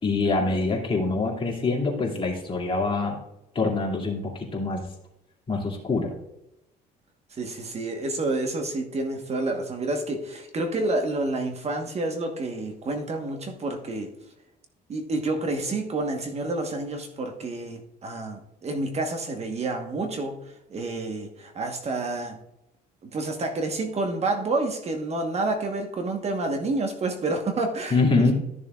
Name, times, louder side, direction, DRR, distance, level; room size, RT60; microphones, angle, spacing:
voice 1, 0.0-3.2 3.5-4.9 5.5-6.1 27.9-28.3, left 3 dB, 30° left, -2 dB, 2.5 m, -25 dB
voice 2, 7.3-14.1 14.9-20.4 20.7-22.4 23.0-28.3, right 2 dB, 40° right, 4 dB, 1.3 m, -29 dB
13.5 x 6.8 x 2.4 m, 0.86 s
cardioid pair, 110°, 17 cm